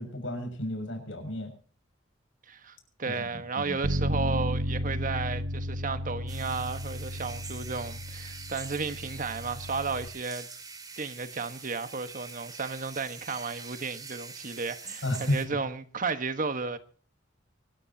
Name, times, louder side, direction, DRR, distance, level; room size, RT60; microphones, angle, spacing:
voice 1, 0.0-1.5 3.0-3.8 15.0-15.6, left 1 dB, 80° left, 6.4 m, -33 dB
voice 2, 2.5-10.5 11.0-16.8, right 4 dB, 45° right, 1.3 m, -33 dB
Bass guitar, 3.8-10.1, equal, 90° right, 1.0 m, -33 dB
sound 1, 6.3-15.5, right 4 dB, 20° right, 2.3 m, -44 dB
24.5 x 13.5 x 2.8 m
head